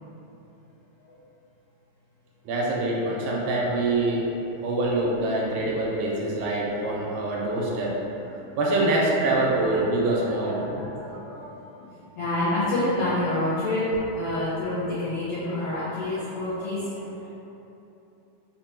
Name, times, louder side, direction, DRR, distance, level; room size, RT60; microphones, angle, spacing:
voice 1, 2.5-4.3 4.6-8.0 8.3-10.6, right 2 dB, 85° right, -3 dB, 2.2 m, -25 dB
voice 2, 10.0-11.5 11.8-11.9 12.2-17.1, left 1 dB, 85° left, -11 dB, 1.3 m, -28 dB
5.5 x 2.2 x 4.3 m, 3.0 s
omnidirectional pair, 3.9 m